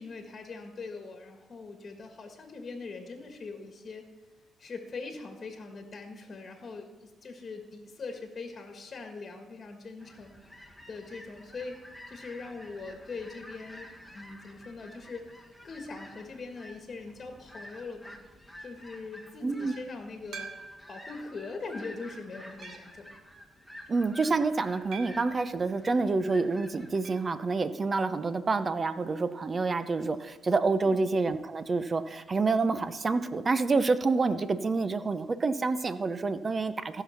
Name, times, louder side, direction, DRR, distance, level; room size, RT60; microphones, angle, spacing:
voice 1, 0.0-4.0 4.6-10.3 10.9-18.2 18.6-20.5 20.9-23.1 30.8-31.0, left 4 dB, 40° left, 4 dB, 1.6 m, -42 dB
sound 1, 10.0-27.1, left 1 dB, ahead, 1.6 m, -50 dB
voice 2, 19.4-19.7 23.9-37.0, right 3 dB, 35° right, 12 dB, 0.7 m, -28 dB
sound 2, 20.3-21.0 21.6-21.7 22.6-23.0 24.9-25.4 27.0-27.3 27.6-27.7 28.0-28.1 30.1-30.2, right 5 dB, 70° right, 1.1 m, -44 dB
15.0 x 5.9 x 5.8 m, 1.2 s
cardioid pair, 90°, 0 cm